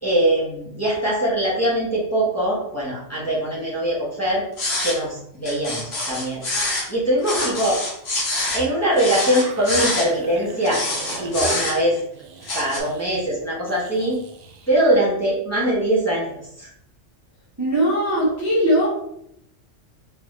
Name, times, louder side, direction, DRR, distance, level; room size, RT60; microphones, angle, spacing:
voice 1, 0.0-4.4 4.8-6.4 6.9-7.8 8.5-10.8 11.2-12.0 12.5-14.2 14.7-16.7, right 1 dB, 15° left, -7 dB, 1.1 m, -22 dB
sound 1, 4.6-5.0 5.5-6.9 7.2-8.6 9.0-10.1 10.6-12.0 12.4-12.8, left 2 dB, 60° left, 1.3 m, -25 dB
sound 2, 9.1-14.9, right 4 dB, 60° right, 0.7 m, -38 dB
voice 2, 17.6-18.9, equal, 15° right, -7 dB, 0.9 m, -20 dB
3.5 x 3.4 x 3.2 m, 0.74 s
omnidirectional pair, 1.3 m